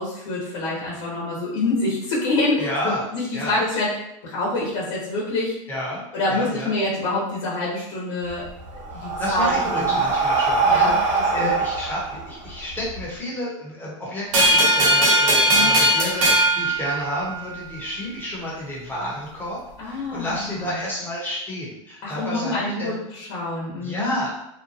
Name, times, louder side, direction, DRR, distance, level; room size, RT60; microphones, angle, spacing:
voice 1, 0.0-3.9 4.2-5.5 6.1-9.5 9.8-10.0 10.6-11.5 15.5-15.7 19.8-20.7 22.0-24.2, left 2 dB, 65° left, -6 dB, 1.0 m, -26 dB
voice 2, 2.6-3.1 3.3-3.6 5.7-6.7 8.9-23.0 23.8-24.3, equal, 10° left, -5 dB, 0.9 m, -30 dB
Breathing, 8.3-13.0, right 4 dB, 45° right, 1.1 m, -23 dB
sound 1, 14.3-17.6, right 1 dB, 85° right, 0.9 m, -18 dB
2.7 x 2.2 x 2.8 m, 0.82 s
supercardioid pair, 130°, 17 cm